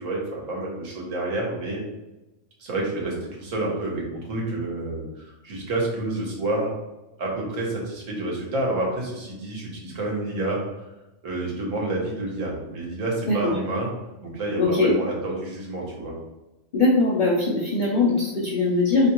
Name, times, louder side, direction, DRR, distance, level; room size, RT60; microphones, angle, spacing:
voice 1, 0.0-1.8 2.6-6.7 7.2-10.6 11.2-13.9 14.2-16.1, right 2 dB, 65° right, -2 dB, 1.3 m, -29 dB
voice 2, 14.6-14.9 16.7-19.1, left 3 dB, 50° left, -6 dB, 0.5 m, -21 dB
3.5 x 2.9 x 2.9 m, 1.0 s
omnidirectional pair, 1.5 m